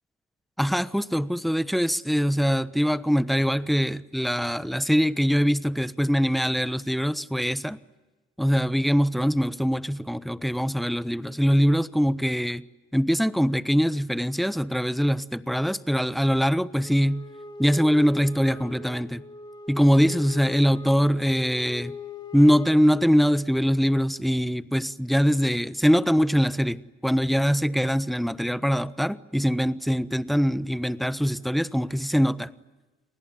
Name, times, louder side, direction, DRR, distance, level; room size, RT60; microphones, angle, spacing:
voice 1, 0.6-7.8 8.4-12.6 12.9-17.2 17.6-19.2 19.7-21.9 22.3-32.5, equal, ahead, 1.1 m, -23 dB
Wind instrument woodwind instrument, 16.8-23.6, left 4 dB, 20° left, 2.4 m, -40 dB
29.5 x 20.0 x 9.7 m
cardioid pair, 90°, 20 cm